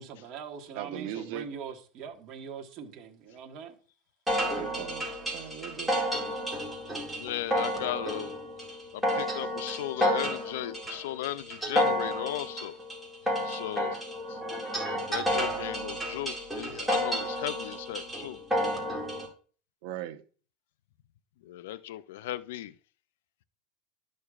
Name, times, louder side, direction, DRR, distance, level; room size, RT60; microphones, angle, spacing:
voice 1, 0.0-3.8, right 7 dB, 45° right, 1.4 m, -42 dB
voice 2, 0.7-1.5 4.4-5.1 5.3-5.9 19.8-20.2, right 11 dB, 70° right, 0.9 m, -39 dB
sound 1, 4.3-19.3, equal, 5° right, 2.1 m, -31 dB
voice 3, 7.2-8.4 8.9-12.8 13.4-14.0 14.3-14.4 14.9-18.4 21.4-22.7, left 13 dB, 85° left, 0.4 m, -36 dB
11.5 x 6.5 x 2.4 m
supercardioid pair, 140°, 0 cm